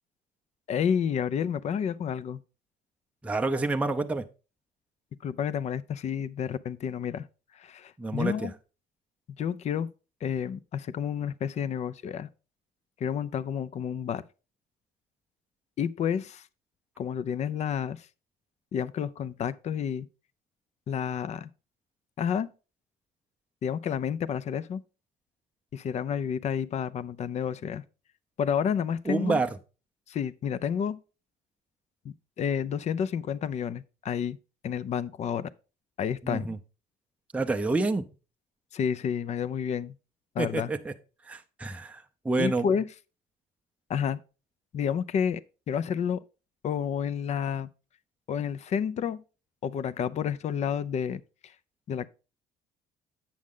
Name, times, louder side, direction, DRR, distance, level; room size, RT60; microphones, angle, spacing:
voice 1, 0.7-2.4 5.2-7.3 7.5-8.5 9.4-9.9 10.2-12.3 13.0-14.2 15.8-16.4 17.0-18.1 18.7-20.1 20.9-21.5 22.2-22.5 23.6-24.8 25.7-27.8 28.4-29.4 30.1-31.0 32.0-34.4 34.6-35.5 36.0-36.5 38.7-39.9 40.3-40.7 42.4-42.9 43.9-44.2 44.7-45.4 45.7-46.2 46.6-47.7 48.3-49.2 49.6-51.5 51.9-52.1, left 7 dB, 40° left, 0.4 m, -30 dB
voice 2, 3.2-4.3 8.0-8.5 29.1-29.5 36.2-36.6 37.3-38.0 40.4-40.9 41.2-42.7, right 3 dB, 10° right, 0.5 m, -28 dB
8.5 x 6.3 x 3.7 m
cardioid pair, 110°, 17 cm